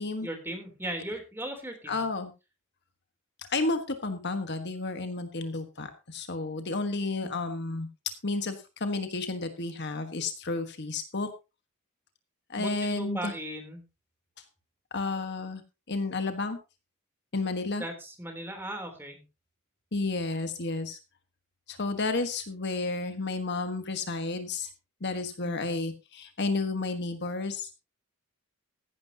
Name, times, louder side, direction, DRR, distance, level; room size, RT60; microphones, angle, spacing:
voice 1, 0.2-2.0 7.2-7.3 12.6-13.8 17.8-19.2 25.4-25.8, right 1 dB, 10° right, 4 dB, 3.2 m, -37 dB
voice 2, 1.9-2.3 3.4-7.9 8.2-11.3 12.5-13.3 14.9-15.6 15.9-16.6 17.3-17.8 19.9-21.0 21.7-24.7 25.0-27.7, left 3 dB, 50° left, 8 dB, 1.3 m, -31 dB
15.0 x 11.5 x 2.8 m, 0.28 s
head